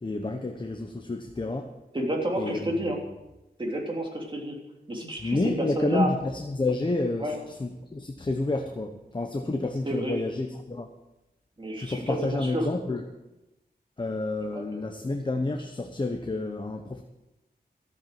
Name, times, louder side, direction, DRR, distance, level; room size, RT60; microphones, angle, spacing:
voice 1, 0.0-1.7 2.4-2.8 5.2-10.9 11.8-13.0 14.0-17.0, left 2 dB, 30° left, 4 dB, 1.1 m, -29 dB
voice 2, 1.9-3.0 3.6-4.6 4.9-5.4 5.8-6.1 7.2-7.3 9.8-10.2 11.6-12.7 14.5-14.8, right 1 dB, 30° right, 0 dB, 3.1 m, -30 dB
13.5 x 8.4 x 7.7 m, 0.97 s
wide cardioid pair, 115°, 17 cm